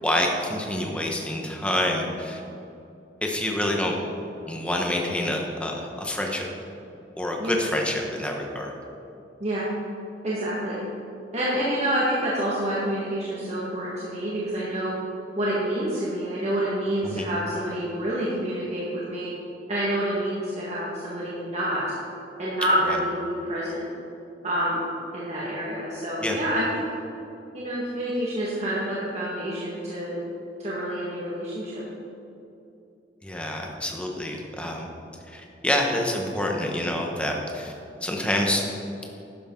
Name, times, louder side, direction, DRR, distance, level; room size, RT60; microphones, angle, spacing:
voice 1, 0.0-2.4 3.2-3.9 4.5-6.4 7.2-8.7 17.0-17.2 22.9-23.0 26.2-26.4 33.2-34.9 35.3-37.7 38.0-38.6, left 1 dB, 5° left, 0 dB, 1.2 m, -27 dB
voice 2, 10.2-10.8 11.3-15.0 15.4-19.3 19.7-21.8 22.4-23.9 24.4-24.8 25.1-26.8 27.5-30.2 30.6-31.8, right 1 dB, 40° right, -7 dB, 1.7 m, -27 dB
11.5 x 10.5 x 3.9 m, 2.7 s
head